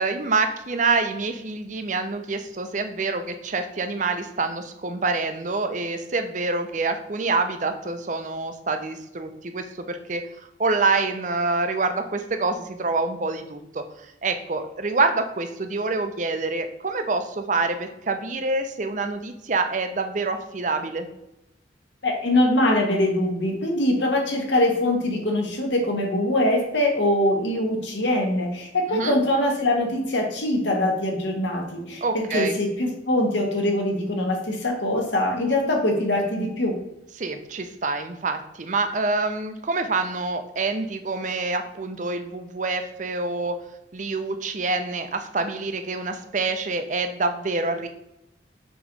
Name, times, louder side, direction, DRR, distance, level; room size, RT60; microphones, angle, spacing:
voice 1, 0.0-10.2 10.6-13.8 14.2-21.1 28.9-29.2 32.0-32.6 37.2-43.6 43.9-47.9, right 3 dB, 45° right, 8 dB, 0.6 m, -26 dB
voice 2, 22.0-36.8, left 1 dB, 80° left, 1 dB, 1.4 m, -23 dB
6.0 x 3.1 x 5.2 m, 0.87 s
head